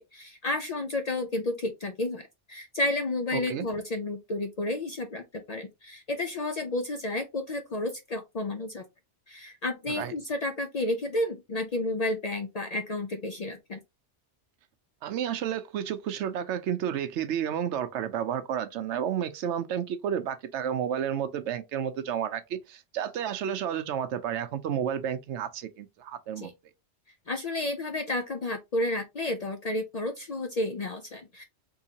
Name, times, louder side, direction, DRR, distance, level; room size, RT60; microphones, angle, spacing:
voice 1, 0.1-8.8 9.3-13.8 26.4-26.5 27.3-31.4, left 2 dB, 55° left, 0.4 m, -31 dB
voice 2, 3.3-3.7 9.9-10.1 15.0-26.5, right 9 dB, 85° right, 0.9 m, -31 dB
3.7 x 2.7 x 2.7 m
omnidirectional pair, 1.2 m